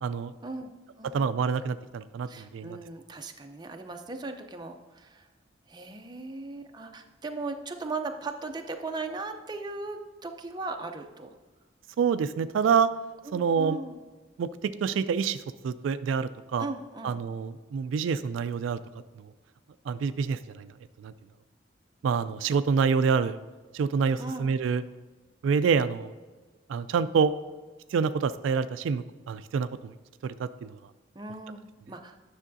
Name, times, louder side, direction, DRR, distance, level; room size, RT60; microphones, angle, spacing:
voice 1, 0.0-0.3 1.1-2.8 12.0-12.9 13.3-13.8 14.4-16.7 17.0-18.8 19.2-19.3 19.9-20.7 21.0-21.1 22.0-23.4 23.7-24.8 25.4-26.1 26.7-27.3 27.9-29.9 30.2-30.8, right 6 dB, 80° right, 13 dB, 0.3 m, -27 dB
voice 2, 1.0-1.4 2.3-5.3 5.7-11.4 13.3-14.0 16.6-17.2 24.2-24.5 31.1-32.2, right 3 dB, 20° right, 4 dB, 0.5 m, -38 dB
9.9 x 6.4 x 2.6 m, 1.3 s
head